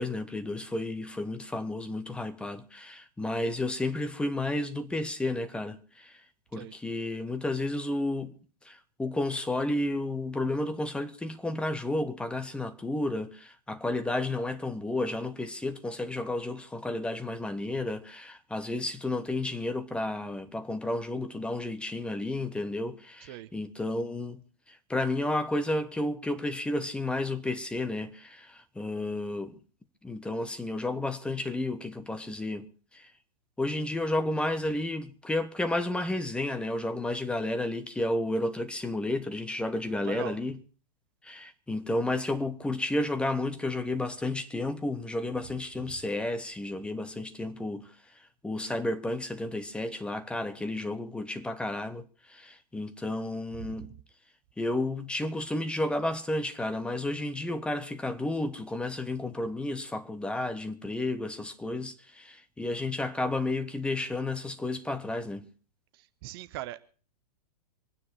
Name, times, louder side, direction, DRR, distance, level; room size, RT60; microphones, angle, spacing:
voice 1, 0.0-6.2 6.5-8.4 8.6-24.4 24.7-29.6 30.0-33.1 33.6-40.6 41.2-53.9 54.6-65.5, left 2 dB, 5° left, 1.1 m, -32 dB
voice 2, 39.9-40.4 53.6-53.9 65.9-66.8, right 15 dB, 35° right, 0.8 m, -40 dB
25.5 x 9.7 x 4.5 m
figure-of-eight pair, 110°, 20 cm